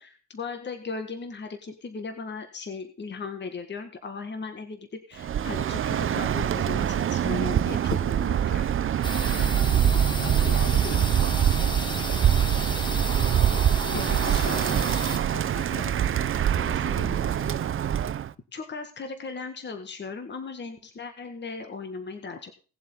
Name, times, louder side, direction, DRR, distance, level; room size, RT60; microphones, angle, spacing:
voice 1, 0.0-8.7 13.9-14.8 18.5-22.5, left 4 dB, 35° left, 8 dB, 1.7 m, -37 dB
Bird, 5.2-18.3, right 9 dB, 45° right, 0.6 m, -24 dB
sound 1, 9.0-15.2, left 1 dB, 15° left, 2.5 m, -34 dB
voice 2, 9.4-11.3 13.8-14.6 15.3-17.7, left 5 dB, 55° left, 9 dB, 2.1 m, -40 dB
18.5 x 7.5 x 3.6 m, 0.36 s
cardioid pair, 90°, 30 cm